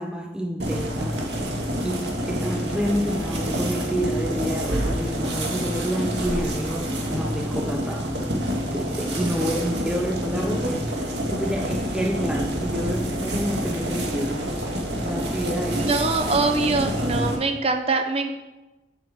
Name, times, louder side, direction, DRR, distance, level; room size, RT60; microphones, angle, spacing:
voice 1, 0.0-1.5 1.8-8.1 8.7-14.6 15.0-15.9, equal, 5° right, 2 dB, 0.6 m, -29 dB
sound 1, 0.6-17.4, equal, 75° right, 2.0 m, -27 dB
voice 2, 15.7-18.3, right 3 dB, 35° right, 6 dB, 0.9 m, -23 dB
8.0 x 7.2 x 7.3 m, 1.1 s
head